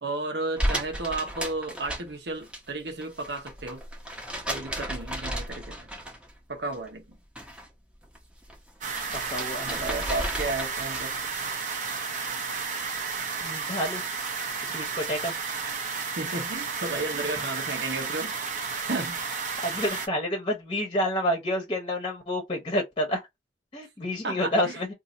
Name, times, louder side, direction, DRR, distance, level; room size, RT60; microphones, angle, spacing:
voice 1, 0.0-3.8 4.5-5.9 6.5-7.2 9.6-11.1 15.3-15.4 16.2-18.3 18.6-19.5 24.2-24.8, right 2 dB, 75° right, 1.1 m, -33 dB
sound 1, 0.6-2.6 2.9-6.4 6.7-7.7 8.0-11.2, equal, 5° right, 1.0 m, -34 dB
sound 2, 8.8-20.1, right 5 dB, 45° right, 0.7 m, -32 dB
voice 2, 9.1-10.0 13.4-14.2 14.6-15.3 19.6-23.2 23.7-24.9, equal, 30° left, 1.0 m, -29 dB
2.7 x 2.7 x 3.9 m
head